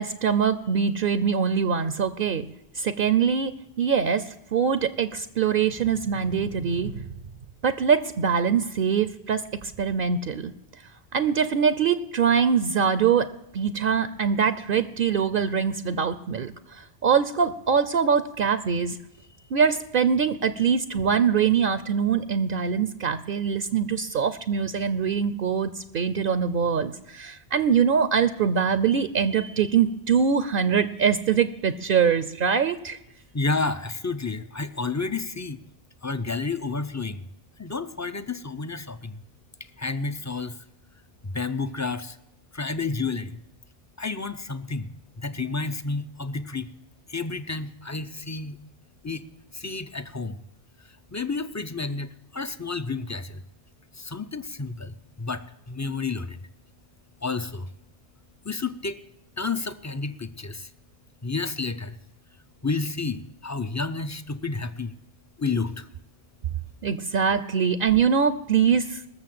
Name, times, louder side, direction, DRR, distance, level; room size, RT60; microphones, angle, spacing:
voice 1, 0.0-2.5 2.8-7.1 7.6-10.5 11.1-13.3 13.5-19.0 19.5-33.0 66.8-69.0, right 7 dB, 60° right, 13 dB, 0.8 m, -23 dB
voice 2, 33.3-35.6 36.0-37.2 37.6-39.2 39.8-40.6 41.2-42.2 42.5-43.4 44.0-44.9 45.2-46.7 47.1-48.6 49.0-49.3 49.5-50.4 51.1-53.4 54.0-56.4 57.2-57.7 58.4-59.0 59.4-60.7 61.2-62.0 62.6-64.9 65.4-65.9, left 4 dB, 25° left, 12 dB, 0.4 m, -30 dB
19.5 x 7.0 x 7.6 m, 0.88 s
omnidirectional pair, 1.1 m